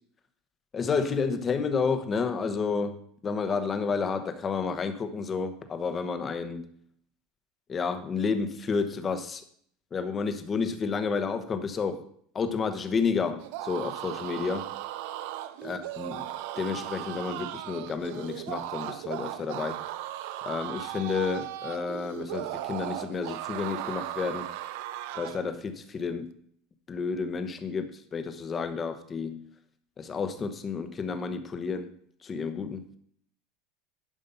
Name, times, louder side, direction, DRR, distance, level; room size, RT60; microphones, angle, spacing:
voice 1, 0.7-3.0 3.2-6.6 7.7-9.4 9.9-12.1 12.3-14.7 15.6-16.3 16.6-19.8 20.5-24.5 25.1-26.3 26.9-29.4 30.0-31.9 32.2-32.9, left 5 dB, 25° left, 8 dB, 1.0 m, -30 dB
sound 1, 13.4-25.5, right 13 dB, 70° right, 0.6 m, -37 dB
11.0 x 5.2 x 5.5 m, 0.63 s
supercardioid pair, 140°, 0 cm